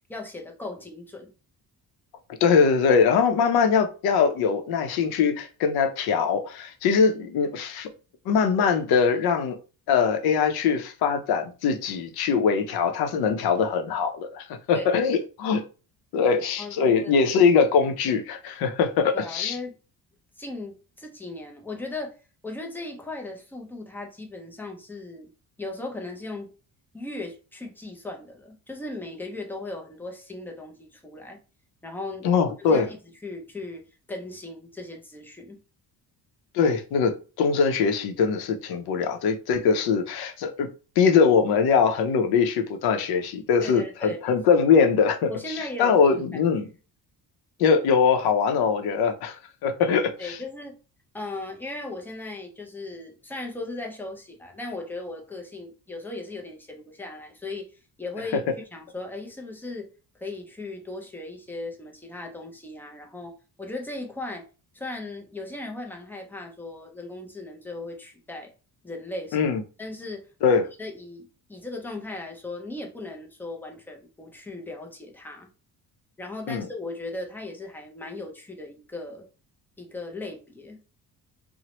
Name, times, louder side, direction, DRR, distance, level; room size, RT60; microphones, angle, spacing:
voice 1, 0.1-1.3 14.7-14.9 16.6-17.1 18.0-18.1 19.1-19.7 20.4-22.2 22.4-25.3 25.6-26.5 26.9-31.4 31.8-32.3 32.7-33.0 33.2-33.8 34.1-35.6 43.6-44.7 45.3-46.0 50.2-50.8 51.1-57.7 58.0-58.4 58.7-59.9 60.2-64.5 64.7-68.5 68.8-69.5 69.8-70.3 70.8-75.5 76.2-79.3 79.8-80.8, left 2 dB, 5° left, 0.3 m, -37 dB
voice 2, 2.4-7.9 8.3-9.6 9.9-15.6 16.1-19.6 32.2-32.9 36.5-40.7 41.0-46.7 47.6-50.4 69.3-69.6 70.4-70.6 76.5-76.6, left 6 dB, 85° left, 0.6 m, -22 dB
2.9 x 2.0 x 2.9 m
cardioid pair, 155°, 37 cm